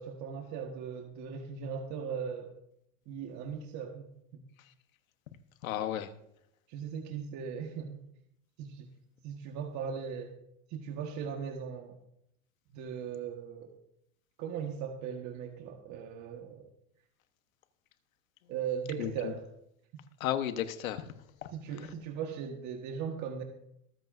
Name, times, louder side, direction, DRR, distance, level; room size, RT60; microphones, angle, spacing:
voice 1, 0.0-2.5 3.1-4.4 6.7-8.0 8.6-8.9 9.2-10.3 10.7-11.9 12.7-13.7 14.4-16.7 18.5-19.4 21.5-23.4, right 7 dB, 45° right, 3 dB, 1.5 m, -38 dB
voice 2, 5.6-6.1 19.0-19.3 20.2-21.1 21.4-21.9, left 11 dB, 90° left, 9 dB, 1.2 m, -34 dB
23.0 x 8.1 x 2.6 m, 0.76 s
supercardioid pair, 125°, 40 cm